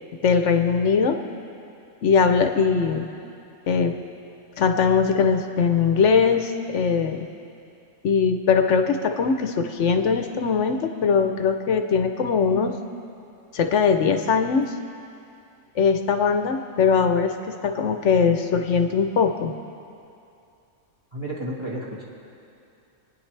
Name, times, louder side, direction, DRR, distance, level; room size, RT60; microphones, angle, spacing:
voice 1, 0.2-1.2 2.0-3.1 3.7-4.0 4.6-7.3 8.0-12.8 13.5-14.7 15.8-17.3 17.6-19.5, left 5 dB, 65° left, 6 dB, 1.1 m, -21 dB
voice 2, 21.1-22.0, right 1 dB, 20° right, -6 dB, 1.8 m, -31 dB
28.5 x 9.9 x 3.3 m, 2.6 s
omnidirectional pair, 1.4 m